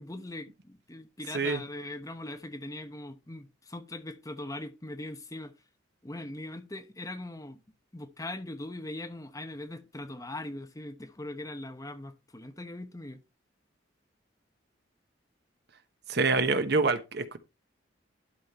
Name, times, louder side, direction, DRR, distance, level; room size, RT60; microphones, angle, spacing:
voice 1, 0.0-5.5 6.0-7.6 7.9-13.2, left 1 dB, 15° left, 1.0 m, -40 dB
voice 2, 16.1-17.4, right 3 dB, 55° right, 1.1 m, -26 dB
12.0 x 5.3 x 4.2 m
head